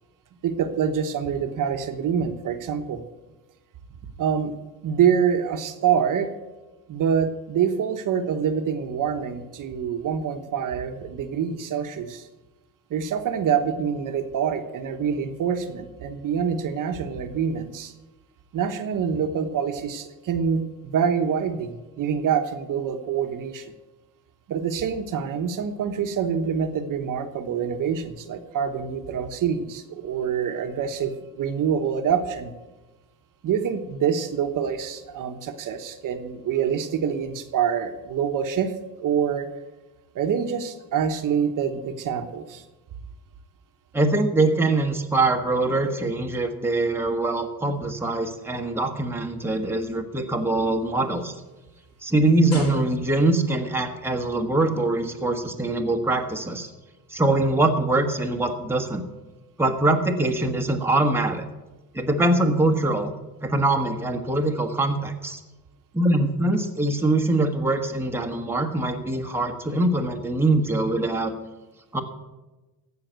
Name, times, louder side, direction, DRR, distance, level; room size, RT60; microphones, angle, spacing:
voice 1, 0.4-3.0 4.2-4.5 4.8-6.3 6.9-12.3 12.9-17.9 18.5-23.7 24.5-32.5 33.4-38.7 39.0-39.5 40.1-42.6, right 7 dB, 55° right, 6 dB, 1.1 m, -26 dB
voice 2, 43.9-51.3 52.0-56.7 57.1-59.0 59.6-61.4 61.9-63.1 63.4-65.4 65.9-71.3 71.9-72.0, right 2 dB, 5° right, 3 dB, 1.3 m, -23 dB
sound 1, 50.3-53.5 54.3-54.5, left 3 dB, 90° left, 4.5 m, -39 dB
15.5 x 5.8 x 8.1 m, 1.1 s
cardioid pair, 130°, 37 cm